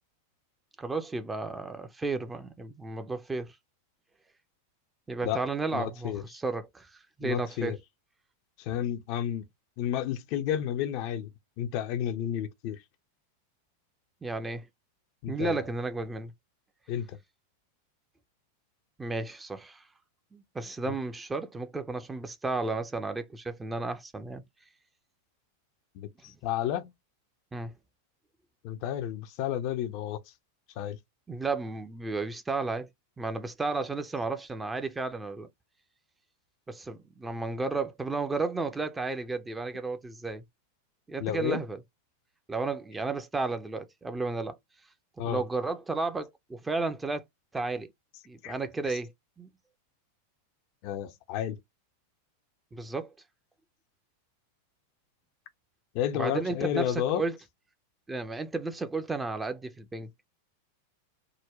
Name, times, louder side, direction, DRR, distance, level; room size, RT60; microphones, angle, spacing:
voice 1, 0.8-3.5 5.1-7.8 14.2-14.7 15.3-16.3 19.0-19.8 20.3-24.4 27.5-27.7 31.3-32.9 33.2-35.5 36.7-40.4 41.1-41.8 42.5-44.6 45.2-47.2 47.5-47.9 48.3-49.1 49.4-49.5 52.7-53.1 56.1-57.4 58.1-60.1, right 3 dB, 10° right, 0.6 m, -33 dB
voice 2, 5.7-6.2 7.2-7.8 8.6-9.4 9.8-11.3 11.6-12.8 15.2-15.7 16.9-17.2 25.9-26.9 28.6-30.2 30.8-31.0 41.2-41.6 45.2-45.4 48.4-48.5 50.8-51.6 55.9-57.2, left 10 dB, 45° left, 0.5 m, -31 dB
3.8 x 2.1 x 3.0 m
figure-of-eight pair, 90°, 0 cm